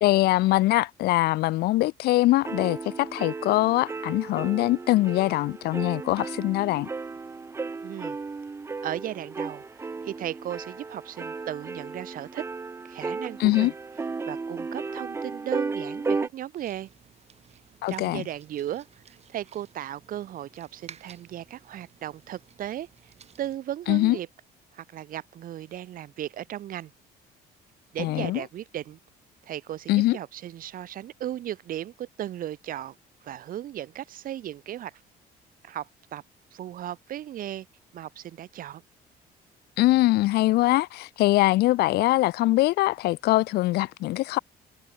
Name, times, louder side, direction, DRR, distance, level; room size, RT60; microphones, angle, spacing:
voice 1, 0.0-6.9 13.4-13.7 17.8-18.2 23.9-24.2 28.0-28.4 29.9-30.2 39.8-44.4, left 17 dB, 70° left, 0.4 m, -23 dB
sound 1, 2.4-16.3, right 4 dB, 15° right, 0.4 m, -34 dB
voice 2, 7.8-8.2 8.8-12.4 12.8-13.7 14.3-16.9 17.9-24.3 24.7-26.9 27.9-29.0 29.4-32.9 33.2-34.9 35.6-36.2 36.5-37.7 37.9-38.8, right 12 dB, 55° right, 0.9 m, -36 dB
sound 2, 16.6-23.6, right 7 dB, 40° right, 1.6 m, -54 dB
cardioid pair, 110°, 17 cm